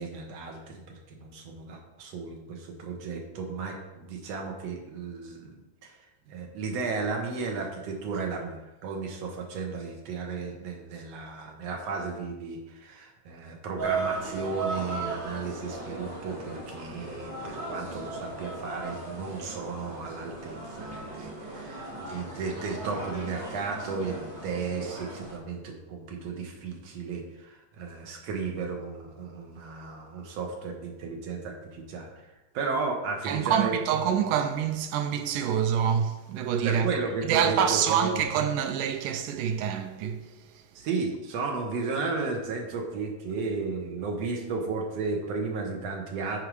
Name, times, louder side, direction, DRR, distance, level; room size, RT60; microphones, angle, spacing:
voice 1, 0.0-6.0 6.3-33.8 36.6-38.3 40.8-46.4, right 4 dB, 60° right, 2.1 m, -34 dB
sound 1, 13.8-25.3, right 3 dB, 40° right, 2.4 m, -37 dB
voice 2, 33.3-36.9 37.2-40.3, right 8 dB, 85° right, 2.2 m, -26 dB
9.0 x 4.7 x 4.8 m
omnidirectional pair, 3.7 m